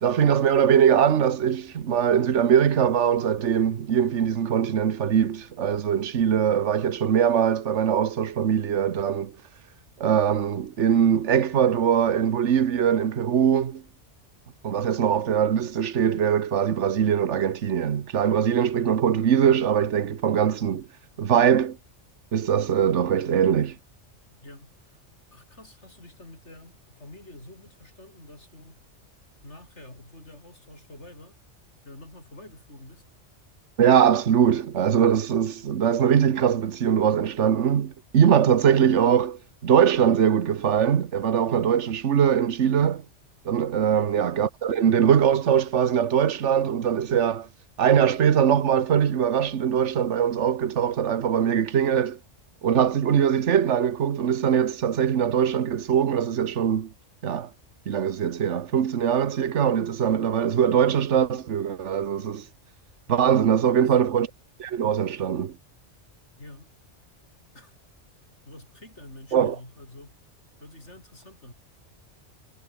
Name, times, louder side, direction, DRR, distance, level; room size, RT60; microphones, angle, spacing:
voice 1, 0.0-9.3 10.0-13.8 14.6-20.9 21.2-21.8 22.3-23.8 33.8-43.0 43.4-47.5 47.8-52.2 52.6-56.9 57.2-57.5 57.9-62.5 63.1-64.3 64.6-65.5 69.3-69.6, right 8 dB, 80° right, 1.4 m, -22 dB
voice 2, 24.4-25.0 25.3-28.8 29.4-31.4 31.8-33.1 43.9-44.2 63.3-64.0 66.4-66.7 67.5-67.8 68.4-70.2 70.6-71.5, left 1 dB, 70° left, 7.4 m, -47 dB
omnidirectional pair, 1.2 m